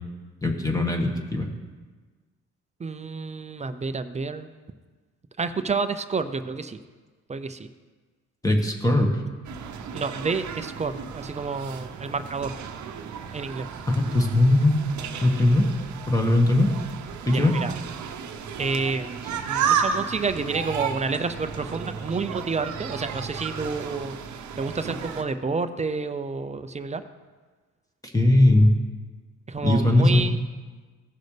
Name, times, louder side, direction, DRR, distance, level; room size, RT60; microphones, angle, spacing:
voice 1, 0.4-1.5 8.4-9.1 13.9-14.7 15.2-15.7 16.1-16.7 17.3-17.5 28.0-28.7 29.6-30.2, left 1 dB, 10° left, 2 dB, 1.6 m, -19 dB
voice 2, 2.8-4.5 5.4-6.8 7.3-7.7 9.9-12.5 13.3-13.7 17.3-17.8 18.6-24.2 24.6-27.0 29.5-30.4, right 4 dB, 25° right, 10 dB, 0.6 m, -29 dB
sound 1, 9.4-25.2, right 7 dB, 70° right, 0.9 m, -33 dB
16.5 x 6.4 x 3.3 m, 1.4 s
cardioid pair, 90°, 30 cm